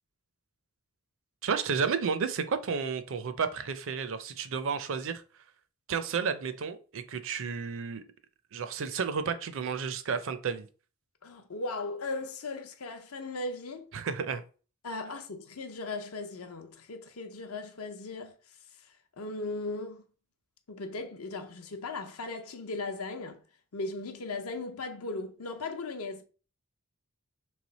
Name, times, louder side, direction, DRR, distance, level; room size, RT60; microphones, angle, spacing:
voice 1, 1.4-5.2 5.9-8.0 8.5-10.7 13.9-14.4, right 6 dB, 60° right, 0.5 m, -32 dB
voice 2, 11.2-13.9 14.8-18.3 18.8-20.0 20.7-23.4 23.7-26.2, left 3 dB, 75° left, 0.7 m, -37 dB
3.2 x 3.2 x 4.0 m
head